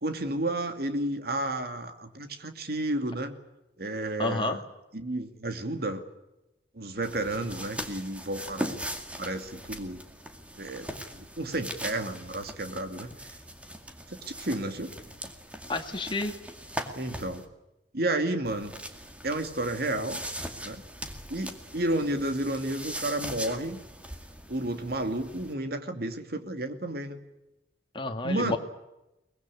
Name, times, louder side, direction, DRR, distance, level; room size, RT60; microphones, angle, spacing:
voice 1, 0.0-3.4 3.8-4.6 4.9-6.0 6.7-8.9 9.2-10.0 10.6-13.1 14.1-14.9 16.9-17.4 17.9-18.7 19.2-20.2 20.6-20.9 21.3-23.8 24.5-27.2 28.2-28.6, right 1 dB, 55° right, 8 dB, 2.6 m, -31 dB
voice 2, 4.2-4.6 15.7-16.4 27.9-28.6, left 2 dB, 25° left, 5 dB, 2.3 m, -30 dB
sound 1, 7.0-17.5 18.4-25.5, right 1 dB, 5° right, 2.2 m, -40 dB
23.5 x 21.0 x 8.5 m, 0.95 s
head